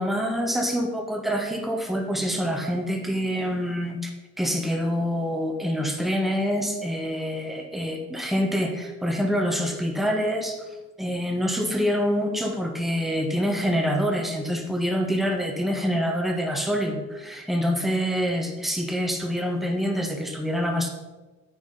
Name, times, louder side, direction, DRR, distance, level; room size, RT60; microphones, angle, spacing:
voice 1, 0.0-20.9, equal, ahead, 3 dB, 1.3 m, -26 dB
9.4 x 4.6 x 5.5 m, 1.2 s
figure-of-eight pair, 50°, 38 cm